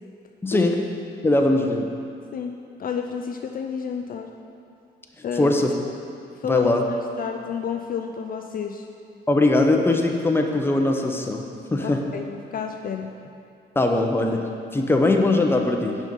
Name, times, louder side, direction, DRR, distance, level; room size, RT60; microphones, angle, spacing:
voice 1, 0.4-0.8 1.2-1.9 5.3-5.7 6.5-6.8 9.3-11.4 11.7-12.0 13.8-16.0, left 2 dB, 10° left, 2 dB, 0.7 m, -21 dB
voice 2, 2.3-4.3 5.2-5.6 6.4-6.7 7.2-8.9 11.8-13.1, left 7 dB, 45° left, 4 dB, 0.4 m, -30 dB
6.2 x 5.5 x 5.2 m, 2.6 s
cardioid pair, 90°, 20 cm